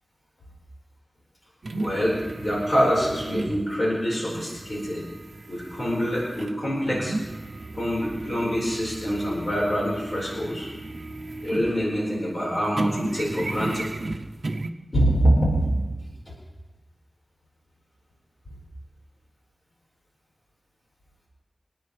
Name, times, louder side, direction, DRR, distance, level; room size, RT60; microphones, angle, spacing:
sound 1, 1.6-12.1 12.4-14.7, right 2 dB, 80° right, 0.7 m, -35 dB
voice 1, 1.8-5.0 5.5-7.2 7.7-10.7 11.4-13.9 14.9-15.7, equal, 65° left, -5 dB, 4.9 m, -25 dB
27.5 x 9.3 x 3.4 m, 1.1 s
wide cardioid pair, 60°, 0 cm